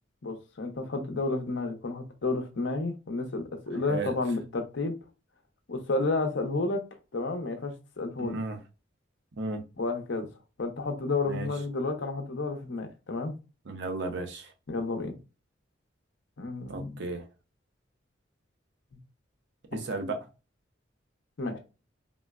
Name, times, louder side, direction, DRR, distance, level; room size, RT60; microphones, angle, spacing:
voice 1, 0.2-4.9 5.7-6.8 7.1-8.4 9.8-10.3 10.6-13.3 14.7-15.2 16.4-17.0 21.4-21.6, left 3 dB, 70° left, 0.7 m, -31 dB
voice 2, 8.2-8.6 9.3-9.6 11.3-11.5 13.7-14.5 16.7-17.2 19.7-20.2, right 3 dB, 65° right, 0.6 m, -34 dB
3.7 x 2.0 x 2.3 m
head